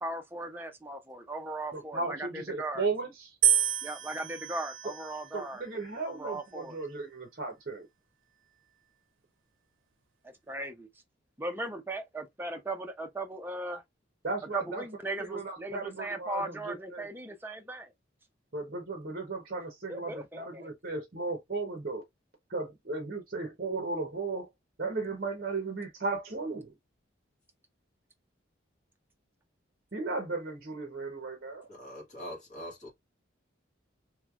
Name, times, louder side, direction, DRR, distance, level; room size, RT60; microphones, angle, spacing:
voice 1, 0.0-2.9 3.8-5.6 6.0-6.8 10.2-10.9 11.4-13.8 14.5-17.9 19.9-20.7, right 2 dB, 10° right, 0.5 m, -38 dB
voice 2, 1.7-3.3 5.3-7.9 14.2-14.8 15.2-17.1 18.5-22.0 22.5-24.5 24.8-26.8 29.9-31.7, right 3 dB, 50° right, 0.8 m, -35 dB
sound 1, 3.4-5.6 6.4-7.0, right 9 dB, 85° right, 0.5 m, -30 dB
voice 3, 31.7-32.9, equal, 40° left, 1.6 m, -43 dB
3.2 x 3.1 x 2.3 m
head